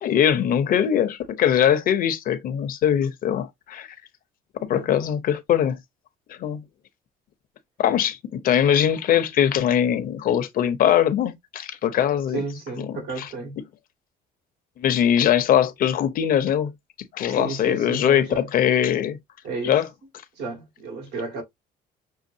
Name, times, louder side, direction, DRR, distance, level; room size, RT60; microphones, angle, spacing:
voice 1, 0.0-3.9 4.6-5.8 6.3-6.6 7.8-12.4 12.8-13.3 14.8-16.7 17.1-19.2 19.6-19.9, left 9 dB, 55° left, 0.7 m, -21 dB
voice 2, 12.3-13.6 17.3-18.5 19.4-19.8 20.4-21.4, right 4 dB, 85° right, 2.4 m, -32 dB
6.3 x 2.3 x 2.7 m
cardioid pair, 110°, 17 cm